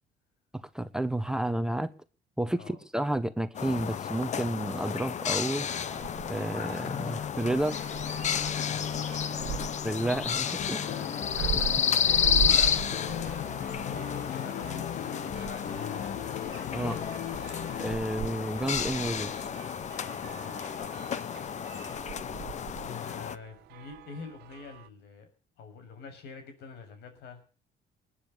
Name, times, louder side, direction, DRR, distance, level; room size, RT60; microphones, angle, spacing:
voice 1, 0.5-1.9 2.4-5.7 6.3-7.8 9.8-10.9 11.4-11.7 16.7-17.0 17.8-19.4, right 1 dB, 5° right, 11 dB, 1.1 m, -31 dB
sound 1, 3.5-23.4, left 8 dB, 45° left, 1.0 m, -31 dB
sound 2, 5.4-24.9, right 12 dB, 75° right, 1.4 m, -41 dB
voice 2, 8.7-9.7 10.9-11.1 12.0-14.0 14.3-16.3 16.8-17.2 20.0-21.0 22.8-25.3 25.6-27.4, left 5 dB, 80° left, 7 dB, 6.9 m, -46 dB
sound 3, 10.6-18.0, left 9 dB, 60° left, 1.8 m, -38 dB
20.5 x 9.9 x 7.1 m, 0.39 s
cardioid pair, 110°, 17 cm